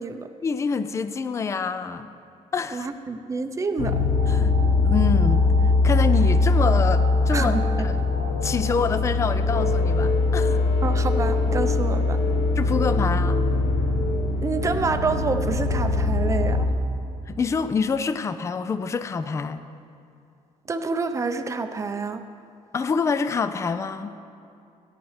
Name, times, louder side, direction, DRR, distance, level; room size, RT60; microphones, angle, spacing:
voice 1, 0.4-2.1 2.5-2.9 4.3-5.4 5.8-8.0 8.4-10.6 12.6-13.4 17.3-19.6 22.7-24.2, left 5 dB, 25° left, 11 dB, 0.4 m, -26 dB
voice 2, 2.7-4.0 7.3-7.6 10.8-12.2 14.4-16.7 20.7-22.2, right 4 dB, 25° right, 8 dB, 0.6 m, -28 dB
sound 1, 3.8-16.7, left 3 dB, 80° left, 1.8 m, -21 dB
14.0 x 10.5 x 3.2 m, 2.6 s
cardioid pair, 125°, 12 cm